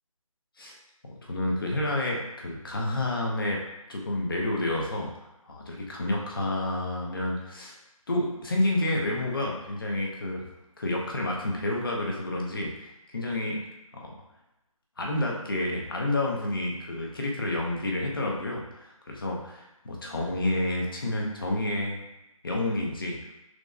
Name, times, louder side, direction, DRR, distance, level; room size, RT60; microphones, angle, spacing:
voice 1, 1.2-3.6 3.9-5.1 5.4-7.8 8.1-10.5 10.8-13.6 13.9-14.1 15.0-22.0 22.4-23.2, left 1 dB, 40° left, -1 dB, 0.6 m, -29 dB
5.9 x 2.0 x 2.6 m, 0.91 s
figure-of-eight pair, 175°, 18 cm